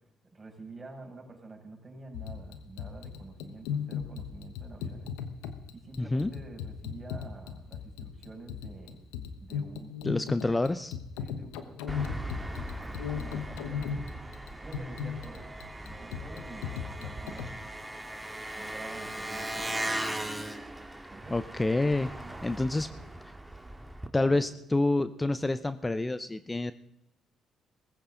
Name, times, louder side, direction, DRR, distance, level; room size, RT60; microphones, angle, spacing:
voice 1, 0.3-5.1 5.7-9.0 9.4-10.4 11.2-14.0 14.6-15.5 15.8-17.6 18.5-20.5 21.1-21.6 21.9-23.0 24.2-24.5, right 3 dB, 30° right, 0 dB, 6.4 m, -48 dB
sound 1, 2.1-17.5, left 7 dB, 85° left, 1.2 m, -37 dB
voice 2, 6.0-6.3 10.0-10.9 21.3-22.1 22.4-22.9 24.1-26.7, left 2 dB, 20° left, 13 dB, 0.7 m, -28 dB
Engine, 11.9-24.1, right 1 dB, 10° right, 2.0 m, -39 dB
18.5 x 15.5 x 3.9 m, 0.85 s
hypercardioid pair, 50°, 0 cm